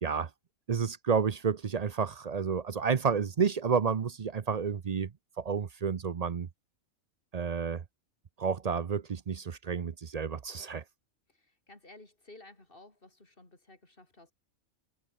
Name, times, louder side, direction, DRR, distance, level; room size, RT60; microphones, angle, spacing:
voice 1, 0.7-5.1 5.4-6.5 7.3-7.8 8.4-10.8, right 6 dB, 45° right, 0.5 m, -30 dB
voice 2, 11.3-14.3, left 2 dB, 40° left, 4.0 m, -55 dB
omnidirectional pair, 1.4 m